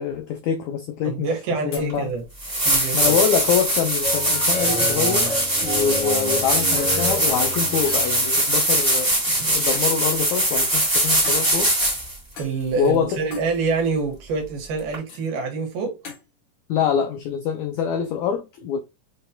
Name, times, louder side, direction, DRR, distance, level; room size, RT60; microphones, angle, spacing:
voice 1, 0.0-1.3 1.6-2.1 2.9-5.3 5.6-11.7 12.8-13.2 16.7-18.8, left 8 dB, 90° left, 1.6 m, -25 dB
voice 2, 1.0-2.2 2.7-3.2 9.3-9.5 12.4-16.0, right 4 dB, 75° right, 2.6 m, -26 dB
sound 1, 1.7-1.9 2.7-2.9 3.7-3.8 4.6-4.8 5.9-6.0 6.9-7.0 7.9-8.0 9.7-10.0 11.2-11.5 12.4-12.6 13.3-13.5 15.1-15.2 16.0-16.2, left 5 dB, 70° left, 2.6 m, -37 dB
sound 2, 1.9-2.0 2.4-12.2 14.9-15.0, right 1 dB, 20° right, 0.8 m, -21 dB
sound 3, 4.0-8.4, equal, 25° left, 1.1 m, -30 dB
6.1 x 2.2 x 2.7 m
omnidirectional pair, 3.8 m